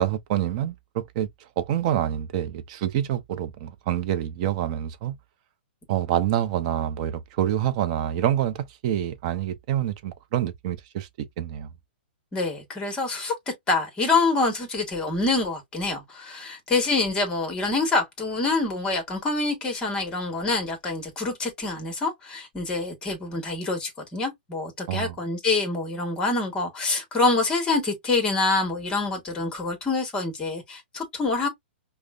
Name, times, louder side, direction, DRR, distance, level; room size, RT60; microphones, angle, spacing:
voice 1, 0.0-5.2 5.9-11.7 24.9-25.2, right 11 dB, 40° right, 0.6 m, -27 dB
voice 2, 12.3-13.3 13.7-31.5, left 3 dB, 15° left, 1.2 m, -26 dB
5.1 x 2.1 x 2.3 m
hypercardioid pair, 155°, 6 cm